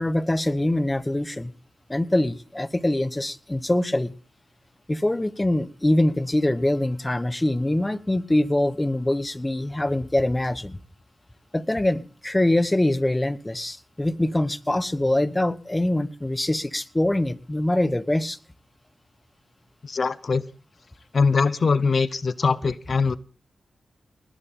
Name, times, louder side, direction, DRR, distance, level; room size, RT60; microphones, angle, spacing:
voice 1, 0.0-1.5 1.9-4.1 4.9-10.8 11.5-18.4, left 1 dB, 15° left, 15 dB, 1.1 m, -24 dB
voice 2, 19.8-20.4 21.1-23.2, left 4 dB, 55° left, 17 dB, 0.6 m, -22 dB
20.0 x 11.5 x 3.7 m, 0.37 s
cardioid pair, 55°, 0 cm